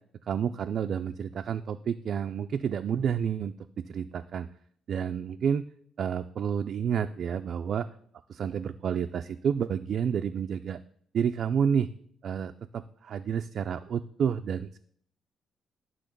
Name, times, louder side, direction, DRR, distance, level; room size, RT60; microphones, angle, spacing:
voice 1, 0.3-4.5 4.9-5.6 6.0-7.9 8.4-10.8 11.1-11.9 12.2-14.8, right 7 dB, 55° right, 8 dB, 0.3 m, -30 dB
10.0 x 3.8 x 6.6 m, 0.62 s
cardioid pair, 130°, 0 cm